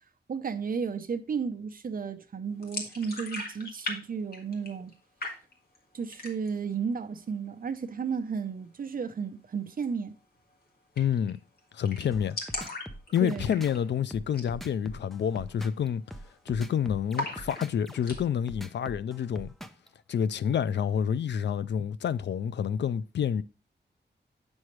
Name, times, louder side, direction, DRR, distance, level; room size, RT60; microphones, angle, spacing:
voice 1, 0.3-4.9 5.9-10.1 13.2-13.5, right 6 dB, 50° right, 0.7 m, -33 dB
sound 1, 2.6-4.0 4.2-4.9 5.2-5.8 6.1-6.6 7.0-7.1 7.4-8.0 9.7-9.9 10.2-10.3 10.5-10.6 11.0-11.3 11.6-11.7 11.8-13.9 14.3-14.5 14.9-15.0 15.5-16.7 17.1-18.2, left 2 dB, 60° left, 1.8 m, -38 dB
voice 2, 11.0-11.4 11.7-12.4 13.1-16.0 16.5-19.5 20.1-23.4, left 8 dB, 75° left, 0.4 m, -28 dB
sound 2, 12.1-19.9, equal, ahead, 0.5 m, -43 dB
8.4 x 6.3 x 3.2 m
wide cardioid pair, 155°, 18 cm